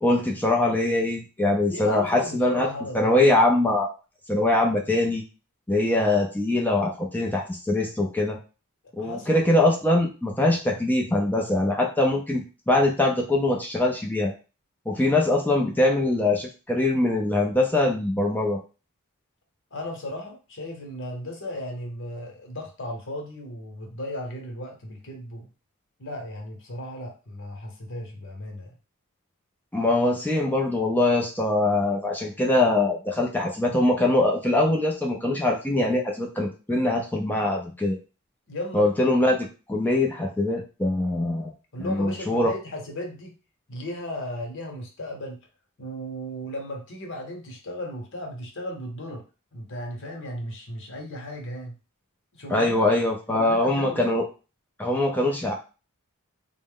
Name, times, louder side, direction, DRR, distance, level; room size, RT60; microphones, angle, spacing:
voice 1, 0.0-2.7 2.9-3.9 4.3-5.2 5.7-8.4 9.0-14.3 14.9-18.6 29.7-38.0 38.7-41.5 41.8-42.5 52.5-54.2 54.8-55.5, left 2 dB, 10° left, 0 dB, 0.5 m, -23 dB
voice 2, 1.7-3.3 9.0-9.3 19.7-25.5 26.0-28.7 38.5-38.9 41.7-43.3 43.7-45.4 45.8-49.2 49.5-51.8 52.3-52.9 53.3-54.0, left 1 dB, 55° left, 2 dB, 1.0 m, -35 dB
4.0 x 2.1 x 3.7 m, 0.33 s
head